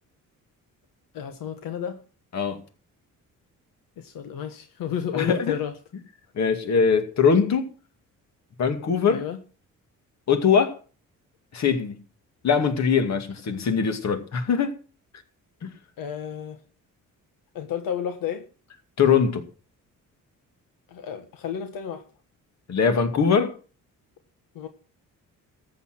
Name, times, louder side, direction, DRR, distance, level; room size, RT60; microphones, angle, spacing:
voice 1, 1.1-2.0 4.0-5.7 9.1-9.4 16.0-16.6 17.5-18.4 20.9-22.0 24.5-24.7, left 9 dB, 85° left, 1.4 m, -31 dB
voice 2, 5.1-5.5 6.3-7.7 8.6-9.2 10.3-10.8 11.5-12.0 12.4-14.7 15.6-15.7 19.0-19.4 22.7-23.5, left 6 dB, 55° left, 2.3 m, -22 dB
14.0 x 8.6 x 6.1 m
cardioid pair, 135°, 33 cm